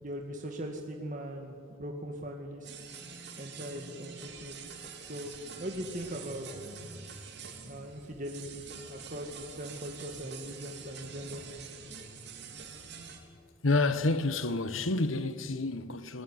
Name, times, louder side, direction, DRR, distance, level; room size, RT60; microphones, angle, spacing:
voice 1, 0.0-2.9 3.4-4.7 5.0-5.3 5.6-6.9 7.7-11.4, equal, 40° right, 2.1 m, -40 dB
sound 1, 2.6-13.2, right 5 dB, 55° right, 3.2 m, -46 dB
voice 2, 13.6-16.2, left 2 dB, 85° left, 1.3 m, -29 dB
29.5 x 19.0 x 9.6 m
head